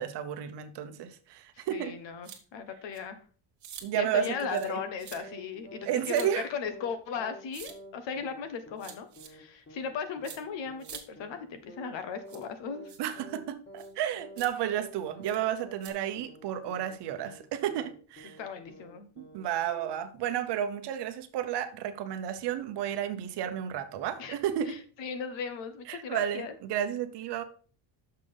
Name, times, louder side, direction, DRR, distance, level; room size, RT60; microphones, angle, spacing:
voice 1, 0.0-1.9 3.8-4.8 5.8-6.5 13.0-18.4 19.2-24.8 25.9-27.4, right 10 dB, 55° right, 0.9 m, -32 dB
voice 2, 1.5-3.2 3.9-12.9 18.4-19.1 24.2-24.4 24.7-26.6, left 6 dB, 60° left, 1.3 m, -37 dB
sound 1, 2.2-2.4 2.9-3.0 3.6-3.9 4.5-4.7 5.0-5.2 6.1-6.3 7.5-7.7 8.8-9.3 10.2-10.4 10.8-11.0 12.3-12.5 12.9-13.0 13.8-13.9 14.4-14.5 15.2-15.4 15.8-15.9, right 8 dB, 35° right, 1.4 m, -45 dB
sound 2, 4.2-4.4 4.7-4.9 5.2-5.4 5.7-5.9 6.2-6.4 6.7-6.9 7.2-7.4 7.7-7.9 8.2-8.4 8.7-8.9 9.2-9.4 9.7-9.9 10.2-10.4 10.7-10.9 11.2-11.4 11.7-11.9 12.2-12.4 12.7-12.9 13.2-13.4 13.7-13.9 14.2-14.4 14.7-14.9 15.2-15.4 15.7-15.9 16.2-16.4 16.7-16.9 17.2-17.4 17.7-17.9 18.2-18.4 18.7-18.9 19.2-19.4 19.7-19.9, right 1 dB, 25° left, 1.8 m, -49 dB
6.6 x 5.7 x 5.3 m
cardioid pair, 180°, 48 cm